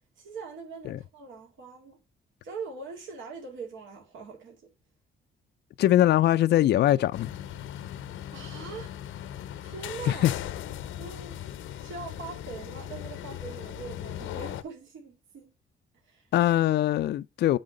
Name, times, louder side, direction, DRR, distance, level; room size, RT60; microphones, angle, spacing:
voice 1, 0.2-2.0 2.4-4.7 8.3-9.0 9.6-10.3 11.0-11.5 11.8-15.5 16.0-16.3, right 4 dB, 75° right, 2.2 m, -42 dB
voice 2, 5.8-7.3 10.1-10.3 16.3-17.6, left 13 dB, 60° left, 0.4 m, -22 dB
sound 1, 7.1-14.6, left 11 dB, 85° left, 0.7 m, -38 dB
7.9 x 3.6 x 6.4 m
cardioid pair, 90°, 20 cm